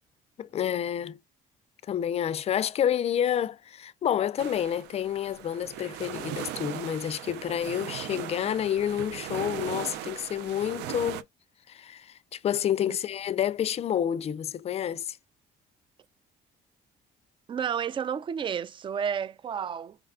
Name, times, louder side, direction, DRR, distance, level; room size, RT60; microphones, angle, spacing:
voice 1, 0.4-1.2 1.9-11.3 11.7-15.2, left 10 dB, 40° left, 0.4 m, -29 dB
sound 1, 4.4-11.2, right 11 dB, 85° right, 0.5 m, -38 dB
voice 2, 17.5-20.0, right 7 dB, 30° right, 0.4 m, -31 dB
4.8 x 2.3 x 3.6 m
cardioid pair, 110°, 17 cm